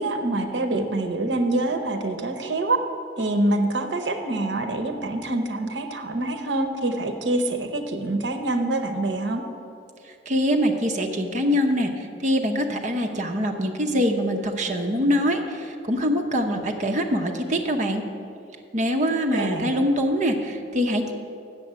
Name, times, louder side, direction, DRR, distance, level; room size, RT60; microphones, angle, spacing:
voice 1, 0.0-2.8 3.2-9.4 19.3-19.7, right 2 dB, 80° right, 6 dB, 0.8 m, -25 dB
voice 2, 10.3-18.0 18.7-21.1, equal, 40° right, 4 dB, 0.8 m, -24 dB
7.7 x 6.8 x 7.5 m, 2.5 s
head